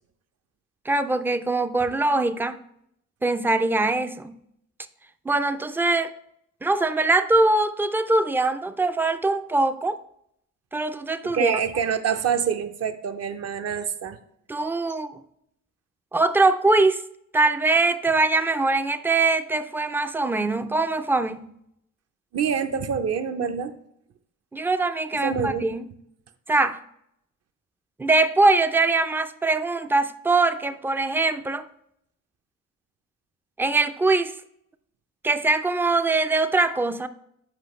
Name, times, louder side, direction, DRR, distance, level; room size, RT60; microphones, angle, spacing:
voice 1, 0.9-2.6 3.2-4.3 5.3-6.1 6.6-10.0 10.7-11.6 14.5-15.2 16.1-17.0 17.3-21.5 24.5-25.8 26.5-26.8 28.0-31.7 33.6-34.3 35.2-37.1, right 3 dB, 5° right, 0.3 m, -22 dB
voice 2, 11.2-14.2 22.3-23.7 25.1-25.7, right 7 dB, 55° right, 0.6 m, -26 dB
7.6 x 4.9 x 3.1 m
cardioid pair, 90°, 30 cm